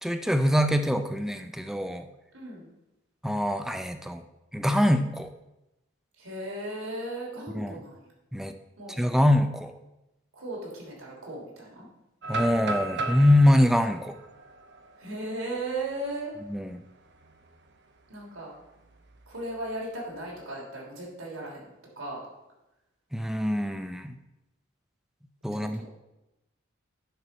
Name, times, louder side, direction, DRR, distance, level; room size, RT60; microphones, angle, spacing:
voice 1, 0.0-2.1 3.2-4.2 4.5-5.3 7.5-7.8 8.3-8.5 9.0-9.7 12.3-14.2 16.5-16.8 23.1-24.2 25.4-25.9, left 1 dB, ahead, 8 dB, 0.5 m, -24 dB
voice 2, 2.3-2.7 6.2-8.0 8.8-9.0 10.3-11.9 15.0-16.3 18.1-18.5 19.3-21.7 22.0-22.2 25.7-25.9, right 2 dB, 90° right, -4 dB, 3.1 m, -36 dB
sound 1, 12.2-16.1 16.6-16.7 17.1-17.5 18.8-19.6, right 2 dB, 55° right, 0.8 m, -36 dB
9.9 x 4.5 x 5.4 m, 0.94 s
head